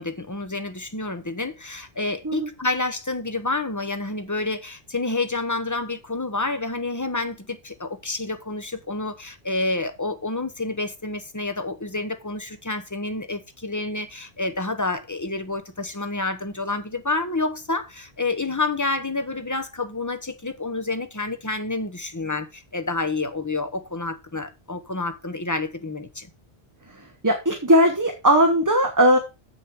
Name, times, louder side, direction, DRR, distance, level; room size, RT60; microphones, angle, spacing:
voice 1, 0.0-26.3, left 2 dB, 20° left, 0.8 m, -29 dB
voice 2, 27.2-29.2, equal, 20° right, 1.0 m, -18 dB
7.4 x 6.8 x 4.7 m
omnidirectional pair, 1.0 m